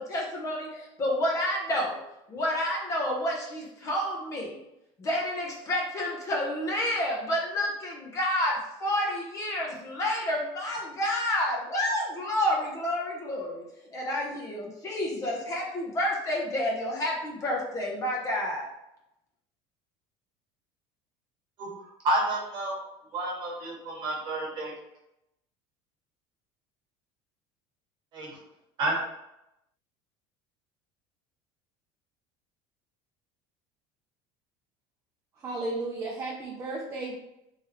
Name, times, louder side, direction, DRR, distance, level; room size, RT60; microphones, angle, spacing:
voice 1, 0.0-2.0 2.3-4.6 5.0-13.6 13.9-18.7, left 1 dB, 25° left, -1 dB, 0.7 m, -29 dB
voice 2, 22.0-22.8 23.1-24.7 28.1-28.3 28.8-29.0, right 2 dB, 40° right, -3 dB, 1.3 m, -29 dB
voice 3, 35.4-37.2, right 2 dB, 20° right, -2 dB, 0.5 m, -34 dB
3.5 x 3.2 x 2.9 m, 0.85 s
cardioid pair, 160°, 12 cm